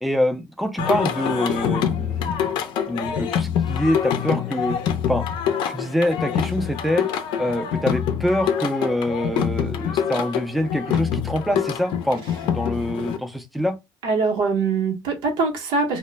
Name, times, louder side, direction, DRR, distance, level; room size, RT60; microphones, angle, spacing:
voice 1, 0.0-2.3 2.9-4.8 5.1-5.3 5.7-7.0 7.4-13.8, equal, ahead, 0.3 m, -25 dB
Singing, 0.8-13.2, left 8 dB, 75° left, 0.5 m, -25 dB
voice 2, 14.0-16.0, right 4 dB, 90° right, 0.8 m, -22 dB
2.1 x 2.0 x 3.2 m
cardioid pair, 160°, 8 cm